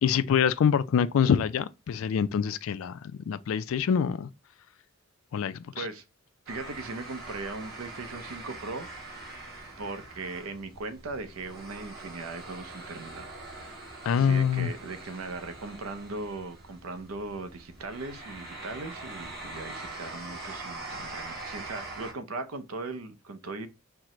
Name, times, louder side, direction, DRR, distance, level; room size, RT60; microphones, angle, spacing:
voice 1, 0.0-4.3 5.3-5.8 14.1-14.7 21.0-21.1, left 7 dB, 65° left, 0.3 m, -25 dB
sound 1, 6.5-22.1, right 2 dB, 50° right, 1.4 m, -43 dB
voice 2, 6.5-8.9 9.8-13.3 14.1-23.7, right 3 dB, 75° right, 0.6 m, -38 dB
4.5 x 2.1 x 3.7 m
head